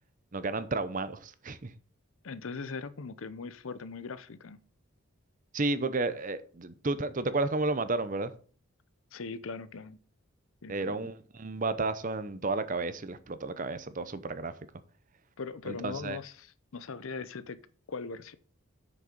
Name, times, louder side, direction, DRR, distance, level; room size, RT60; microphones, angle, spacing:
voice 1, 0.3-1.7 5.5-8.3 10.7-14.5 15.7-16.2, right 3 dB, 35° right, 0.7 m, -32 dB
voice 2, 2.2-4.6 9.1-10.0 10.6-11.1 15.4-17.6 17.9-18.3, left 4 dB, 70° left, 0.6 m, -40 dB
7.7 x 6.5 x 5.2 m
head